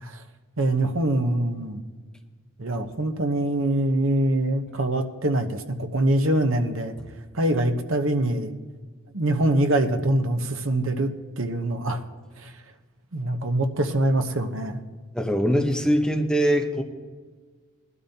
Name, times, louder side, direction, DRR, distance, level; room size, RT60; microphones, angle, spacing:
voice 1, 0.6-1.8 2.6-6.9 7.3-8.6 9.1-11.1 11.4-12.0 12.4-12.5 13.1-14.8, right 1 dB, 60° right, 6 dB, 1.0 m, -24 dB
voice 2, 15.1-16.8, equal, 5° left, 2 dB, 0.9 m, -22 dB
19.5 x 12.5 x 2.8 m, 1.5 s
head